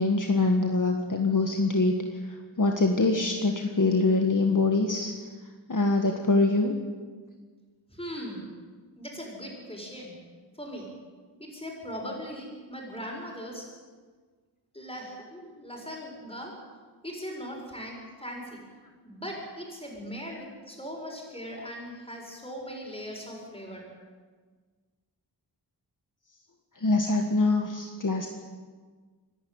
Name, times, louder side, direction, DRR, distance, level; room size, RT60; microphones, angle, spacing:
voice 1, 0.0-1.9 2.2-5.1 5.7-6.8 26.7-28.3, left 3 dB, 45° left, 3 dB, 1.7 m, -24 dB
voice 2, 7.9-8.4 9.0-10.2 10.5-10.9 11.4-13.6 14.7-16.5 17.0-18.6 19.0-23.9, equal, 15° left, 0 dB, 7.0 m, -39 dB
26.5 x 11.5 x 9.6 m, 1.5 s
wide cardioid pair, 75°, 41 cm